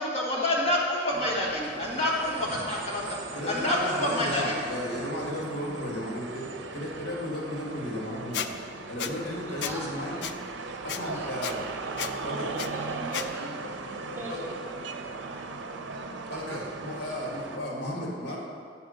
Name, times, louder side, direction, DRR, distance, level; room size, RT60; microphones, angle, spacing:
voice 1, 0.0-3.1 3.5-4.6, left 1 dB, 35° left, -4 dB, 1.6 m, -27 dB
sound 1, 1.1-17.6, right 3 dB, 85° right, 0.5 m, -38 dB
voice 2, 3.3-8.4 8.9-10.1 10.7-11.6 12.2-12.6 14.3-14.4 16.3-18.4, left 1 dB, 85° left, -3 dB, 1.9 m, -34 dB
Squeak, 8.3-8.5 9.0-9.1 9.6-9.8 10.2-10.3 10.9-11.0 11.4-11.5 12.0-12.1 12.6-12.7 13.1-13.3, left 8 dB, 65° left, 0.4 m, -32 dB
voice 3, 9.6-10.2 11.1-11.6 11.9-12.3 12.7-14.6 14.9-15.1 15.4-15.5, equal, 10° right, -5 dB, 1.5 m, -43 dB
8.3 x 4.8 x 6.4 m, 2.1 s
head